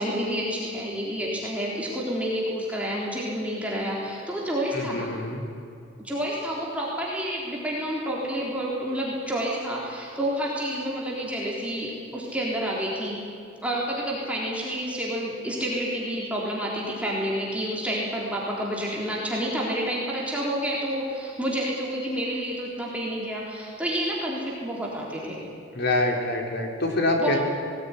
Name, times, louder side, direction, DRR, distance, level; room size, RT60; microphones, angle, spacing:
voice 1, 0.0-5.1 6.0-13.2 13.6-25.4 27.2-27.4, equal, 5° right, -4 dB, 3.8 m, -29 dB
voice 2, 4.7-5.4 25.7-27.4, left 2 dB, 60° left, 2 dB, 3.8 m, -25 dB
19.5 x 19.0 x 9.9 m, 2.5 s
head